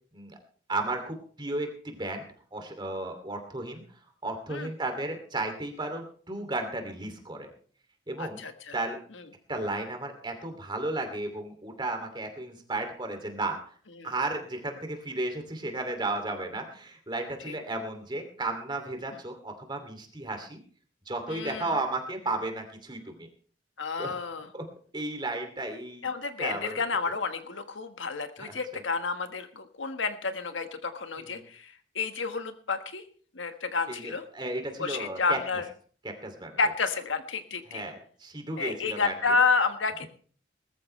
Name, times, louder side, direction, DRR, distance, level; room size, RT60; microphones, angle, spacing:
voice 1, 0.7-2.2 2.5-3.8 4.2-7.5 8.1-8.4 8.7-9.0 9.5-13.6 14.0-20.6 21.1-23.3 24.0-24.2 24.5-24.6 24.9-26.1 26.4-26.8 28.4-28.8 31.2-31.4 33.9-35.4 36.0-36.6 37.7-39.4, right 2 dB, 25° right, 5 dB, 2.7 m, -34 dB
voice 2, 8.2-8.7 14.0-14.1 17.5-17.6 21.3-21.7 23.8-24.5 26.0-33.0 33.3-34.2 34.8-35.6 36.6-37.8 38.6-40.1, left 4 dB, 85° left, 8 dB, 1.5 m, -30 dB
20.0 x 14.0 x 3.3 m, 0.43 s
head